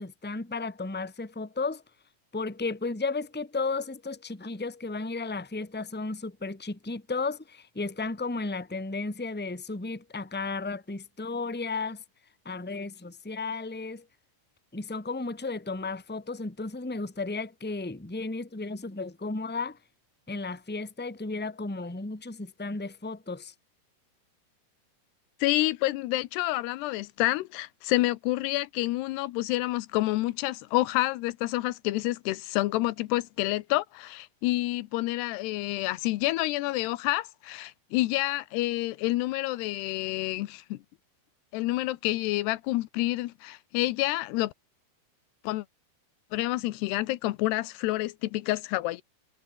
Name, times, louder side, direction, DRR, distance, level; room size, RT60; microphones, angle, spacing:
voice 1, 0.0-1.8 2.3-12.0 12.4-14.0 14.7-19.8 20.3-23.5, left 3 dB, 5° left, 1.8 m, -34 dB
voice 2, 25.4-40.8 41.5-44.5 45.4-45.7 46.3-49.0, left 18 dB, 85° left, 2.9 m, -28 dB
omnidirectional pair, 4.7 m